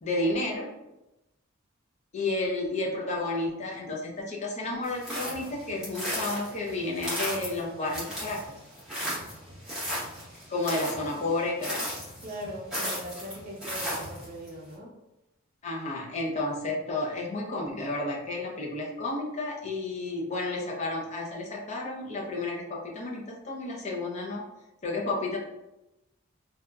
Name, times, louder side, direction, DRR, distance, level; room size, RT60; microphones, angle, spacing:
voice 1, 0.0-0.7 2.1-8.4 10.5-11.8 15.6-24.4 24.8-25.4, left 2 dB, 30° left, -2 dB, 0.5 m, -31 dB
sound 1, 4.8-14.5, equal, 5° right, 0.8 m, -35 dB
voice 2, 12.2-14.9, equal, 40° right, 0 dB, 0.5 m, -40 dB
2.8 x 2.3 x 2.2 m, 0.94 s
head